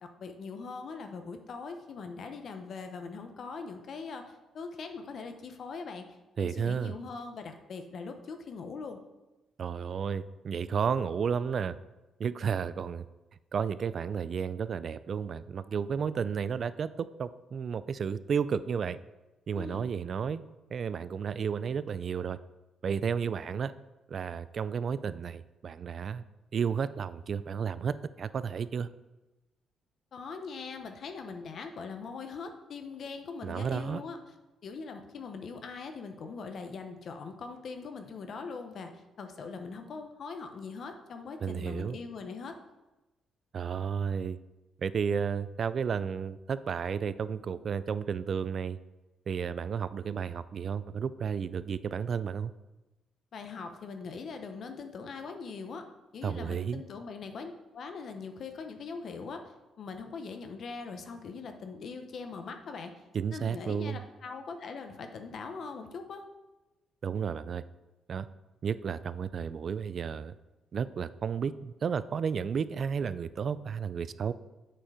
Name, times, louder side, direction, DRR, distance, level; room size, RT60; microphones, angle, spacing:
voice 1, 0.0-6.1 6.4-9.0 19.5-19.9 30.1-34.2 34.6-42.6 53.3-55.9 56.1-59.4 59.8-63.0 63.3-66.2, left 4 dB, 60° left, 6 dB, 0.8 m, -41 dB
voice 2, 6.4-7.0 9.6-11.7 12.2-13.1 13.5-19.0 19.5-20.4 20.7-22.4 22.8-23.7 24.1-26.2 26.5-28.9 33.4-34.0 41.4-42.0 43.5-44.4 44.8-48.8 49.3-52.5 56.2-56.8 63.1-64.0 67.0-67.6 68.1-68.3 68.6-70.3 70.7-74.3, right 6 dB, 50° right, 15 dB, 0.3 m, -32 dB
7.6 x 4.4 x 4.9 m, 1.0 s
cardioid pair, 90°, 0 cm